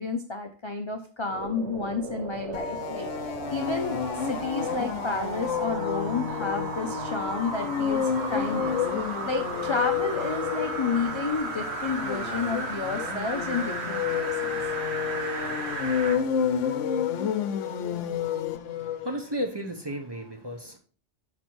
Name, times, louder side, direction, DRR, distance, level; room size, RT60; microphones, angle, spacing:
voice 1, 0.0-14.6, left 4 dB, 45° left, 5 dB, 0.4 m, -31 dB
sound 1, 1.2-16.2 16.7-16.8, right 4 dB, 65° right, 1.1 m, -35 dB
sound 2, 2.5-19.1, left 8 dB, 85° left, 1.0 m, -30 dB
voice 2, 18.6-20.8, equal, 25° right, 3 dB, 0.6 m, -34 dB
6.0 x 4.4 x 4.5 m, 0.41 s
omnidirectional pair, 1.2 m